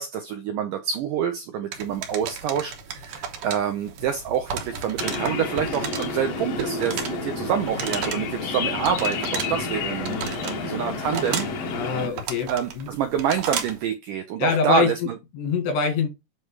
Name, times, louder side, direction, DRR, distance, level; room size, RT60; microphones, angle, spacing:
voice 1, 0.0-11.5 12.5-15.2, right 8 dB, 85° right, 1.9 m, -27 dB
sound 1, 1.7-13.9, right 7 dB, 65° right, 2.2 m, -35 dB
sound 2, 5.0-12.1, left 4 dB, 65° left, 1.6 m, -30 dB
voice 2, 11.7-12.9 14.4-15.1 15.3-16.1, left 6 dB, 85° left, 4.1 m, -25 dB
8.8 x 3.3 x 4.7 m
omnidirectional pair, 4.7 m